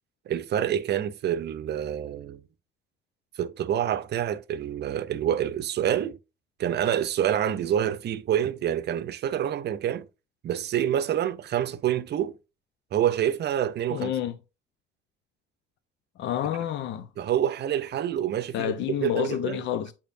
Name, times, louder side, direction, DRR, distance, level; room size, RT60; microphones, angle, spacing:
voice 1, 0.3-2.4 3.4-6.2 6.6-10.1 10.4-12.4 12.9-14.1 17.2-18.7 19.0-19.6, right 10 dB, 55° right, 0.7 m, -27 dB
voice 2, 13.9-14.4 16.2-17.1 18.5-19.9, left 10 dB, 60° left, 0.6 m, -29 dB
8.4 x 5.0 x 2.6 m
hypercardioid pair, 55°, 21 cm